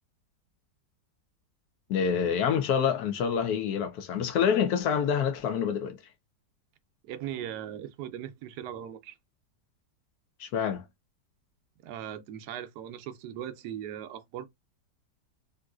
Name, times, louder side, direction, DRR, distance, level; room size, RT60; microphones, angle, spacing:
voice 1, 1.9-6.0 10.4-10.8, left 7 dB, 70° left, 1.1 m, -27 dB
voice 2, 7.0-9.2 11.8-14.5, right 10 dB, 70° right, 1.1 m, -39 dB
3.7 x 2.5 x 2.3 m
omnidirectional pair, 1.9 m